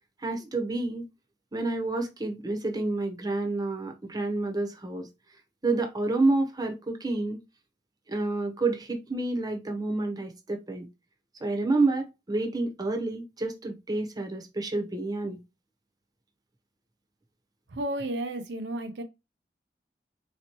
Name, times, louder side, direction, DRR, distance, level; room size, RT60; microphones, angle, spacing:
voice 1, 0.2-1.1 1.5-5.1 5.6-7.4 8.1-10.9 11.4-15.4, right 2 dB, 25° right, 0.9 m, -29 dB
voice 2, 17.7-19.0, right 1 dB, 75° right, 0.6 m, -32 dB
4.1 x 2.9 x 2.9 m
head